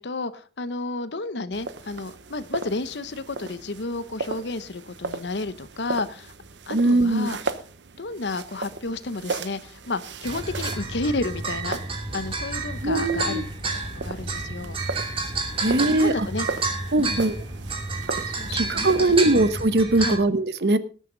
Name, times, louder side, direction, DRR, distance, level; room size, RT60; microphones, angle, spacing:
voice 1, 0.0-6.3 6.7-7.4 8.0-13.4 13.9-14.8 15.6-16.5 17.0-17.2 18.3-19.0 20.0-20.2, left 3 dB, 75° left, 13 dB, 0.9 m, -31 dB
sound 1, 1.5-19.5, right 3 dB, 85° right, 1.0 m, -37 dB
voice 2, 6.7-7.3 12.8-13.4 15.6-16.3 16.9-17.4 18.5-20.8, right 2 dB, 65° right, 13 dB, 1.0 m, -21 dB
sound 2, 10.2-20.2, right 3 dB, 30° right, 2.7 m, -30 dB
18.5 x 9.2 x 3.9 m, 0.38 s
head